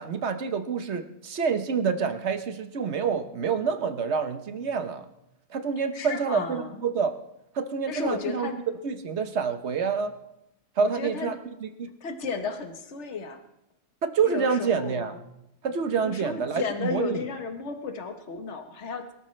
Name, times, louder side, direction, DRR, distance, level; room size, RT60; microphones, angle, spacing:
voice 1, 0.0-5.0 5.5-7.1 7.5-8.5 8.8-10.1 10.8-11.9 14.0-15.1 15.6-17.3, right 6 dB, 70° right, 8 dB, 1.3 m, -27 dB
voice 2, 5.8-6.8 7.9-8.6 10.8-11.3 12.0-13.4 14.2-15.2 16.0-19.1, left 5 dB, 70° left, 6 dB, 1.5 m, -34 dB
23.0 x 13.0 x 3.2 m, 0.86 s
omnidirectional pair, 1.2 m